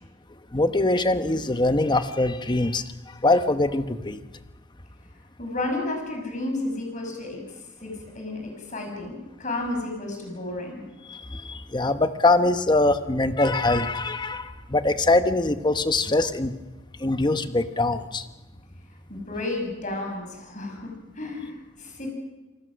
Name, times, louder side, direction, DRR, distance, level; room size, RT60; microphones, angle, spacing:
voice 1, 0.5-2.8 3.2-4.2 11.1-16.5 17.0-18.2, left 2 dB, 25° left, 10 dB, 0.9 m, -23 dB
voice 2, 5.4-7.4 7.8-10.8 19.1-20.9 21.2-22.1, left 2 dB, 40° left, 2 dB, 6.3 m, -32 dB
28.0 x 19.5 x 6.3 m, 1.2 s
head